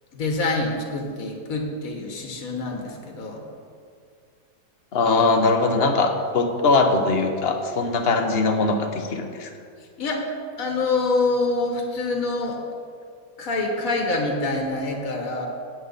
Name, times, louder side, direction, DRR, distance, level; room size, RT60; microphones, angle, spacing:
voice 1, 0.1-3.4 10.0-10.2 10.6-12.6 13.4-15.5, left 3 dB, 60° left, 2 dB, 1.9 m, -26 dB
voice 2, 4.9-9.5, left 3 dB, 45° left, 5 dB, 1.1 m, -21 dB
17.5 x 7.7 x 4.1 m, 2.3 s
omnidirectional pair, 1.7 m